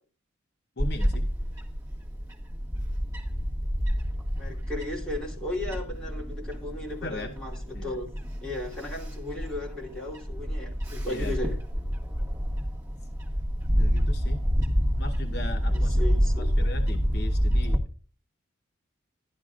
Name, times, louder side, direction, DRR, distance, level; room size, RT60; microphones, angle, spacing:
voice 1, 0.8-1.3 7.0-7.3 7.7-7.9 11.1-11.4 13.8-14.4 15.0-16.0 16.3-17.8, left 1 dB, 55° left, 0.9 m, -38 dB
Bird / Wind, 0.8-17.8, equal, 20° right, 1.7 m, -28 dB
voice 2, 4.3-8.1 8.4-11.6 15.7-16.5, left 2 dB, 5° left, 3.0 m, -35 dB
12.0 x 11.5 x 2.4 m
head